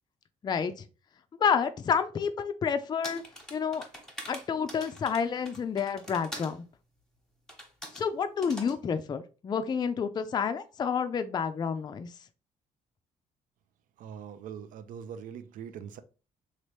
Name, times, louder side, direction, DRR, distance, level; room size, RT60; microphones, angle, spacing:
voice 1, 1.4-3.2 3.5-3.9 4.3-6.6 7.9-12.1, left 6 dB, 30° left, 0.3 m, -29 dB
sound 1, 3.0-6.6 7.5-8.1 8.4-8.8, equal, 5° left, 1.0 m, -44 dB
voice 2, 14.0-16.0, right 8 dB, 70° right, 0.4 m, -42 dB
3.0 x 2.4 x 3.1 m
cardioid pair, 85°, 14 cm